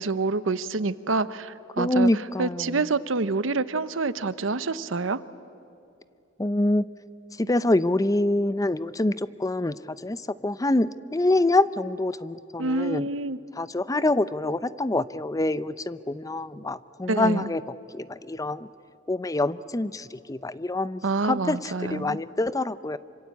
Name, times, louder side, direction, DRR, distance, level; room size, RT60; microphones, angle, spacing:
voice 1, 0.0-2.1 2.4-5.2 12.6-13.4 17.1-17.5 21.0-22.2, right 3 dB, 80° right, 15 dB, 0.9 m, -27 dB
voice 2, 1.8-2.9 6.4-6.8 7.4-9.7 10.0-13.1 13.6-17.6 17.9-18.7 19.1-23.0, left 2 dB, 20° left, 15 dB, 0.6 m, -26 dB
27.0 x 25.5 x 8.4 m, 2.8 s
head